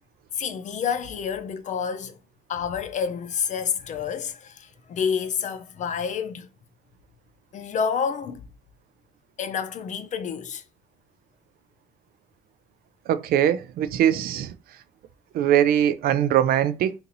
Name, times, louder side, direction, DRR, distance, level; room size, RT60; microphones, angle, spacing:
voice 1, 0.3-2.2 2.5-6.5 7.5-8.4 9.4-10.6, left 7 dB, 45° left, 0.6 m, -29 dB
voice 2, 13.1-14.5 15.3-16.9, right 10 dB, 65° right, 0.4 m, -21 dB
2.9 x 2.6 x 3.9 m
cardioid pair, 110°, 17 cm